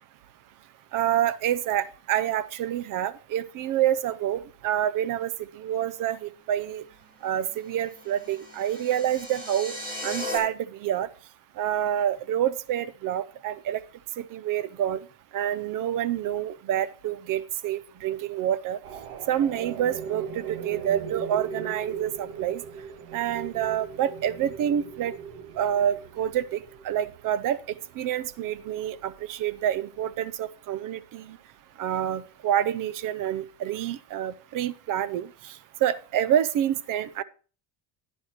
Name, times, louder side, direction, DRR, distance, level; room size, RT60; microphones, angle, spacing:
voice 1, 0.9-6.8 7.2-9.7 10.0-11.1 11.6-13.8 14.2-15.0 15.3-18.8 19.3-22.6 23.1-25.1 25.6-31.4 31.8-35.5 35.8-37.2, right 10 dB, 45° right, 18 dB, 0.5 m, -27 dB
sound 1, 7.8-10.4, left 1 dB, 15° right, 2.2 m, -37 dB
sound 2, 18.8-30.5, right 6 dB, 70° right, 1.5 m, -39 dB
11.5 x 10.5 x 3.0 m, 0.38 s
cardioid pair, 160°, 48 cm